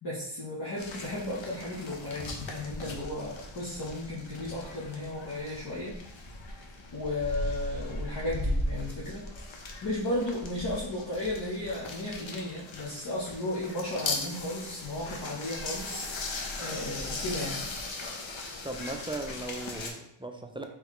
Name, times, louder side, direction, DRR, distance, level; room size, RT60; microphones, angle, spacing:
voice 1, 0.0-5.9 6.9-9.3 9.8-16.1 16.6-17.6, left 1 dB, 55° left, -7 dB, 1.0 m, -34 dB
sound 1, 0.8-19.9, left 2 dB, 75° left, 0.8 m, -38 dB
voice 2, 18.6-20.6, right 2 dB, 10° right, 4 dB, 0.3 m, -37 dB
3.8 x 3.2 x 3.1 m, 0.77 s
wide cardioid pair, 80°, 47 cm